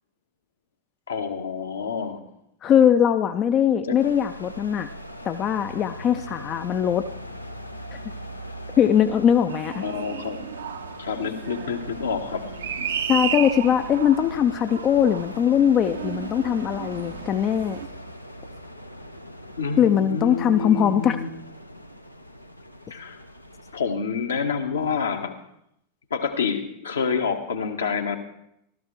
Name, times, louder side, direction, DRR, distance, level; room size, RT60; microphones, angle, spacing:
voice 1, 1.1-2.2 3.9-4.0 9.8-10.4 11.0-12.5 19.6-21.3 22.9-23.2 23.7-25.3 26.1-28.2, left 5 dB, 70° left, 4 dB, 1.2 m, -28 dB
voice 2, 2.6-4.9 5.2-7.0 7.9-8.0 8.8-9.8 13.1-17.8 19.8-21.2, left 9 dB, 30° left, 9 dB, 0.5 m, -21 dB
sound 1, 4.0-23.9, equal, 90° left, 0.7 m, -40 dB
sound 2, 9.5-17.9, right 8 dB, 65° right, 0.8 m, -34 dB
14.5 x 13.0 x 3.3 m, 0.77 s
figure-of-eight pair, 90°, 0 cm